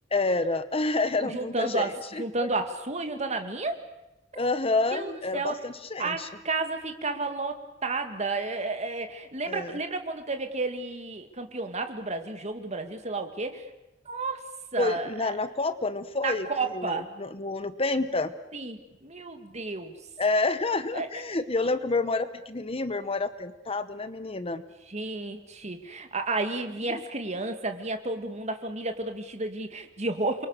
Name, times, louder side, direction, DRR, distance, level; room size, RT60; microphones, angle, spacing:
voice 1, 0.1-2.5 4.3-6.3 9.5-9.8 14.8-18.3 20.2-24.6, left 3 dB, 30° left, 12 dB, 1.0 m, -28 dB
voice 2, 1.2-3.8 4.3-4.5 4.9-5.6 6.0-13.7 14.1-14.4 14.7-15.3 16.2-17.1 18.5-20.0 20.9-21.1 24.9-30.5, right 3 dB, 35° right, 7 dB, 2.2 m, -32 dB
29.0 x 24.0 x 6.6 m, 0.92 s
head